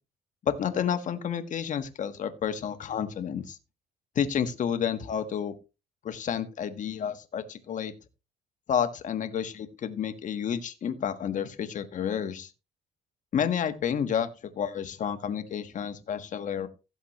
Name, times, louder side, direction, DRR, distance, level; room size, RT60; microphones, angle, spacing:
voice 1, 0.4-3.6 4.1-5.5 6.0-7.9 8.7-12.5 13.3-14.3 14.6-16.7, left 8 dB, 50° left, 9 dB, 1.4 m, -30 dB
16.0 x 7.2 x 3.1 m, 0.30 s
cardioid pair, 110°, 17 cm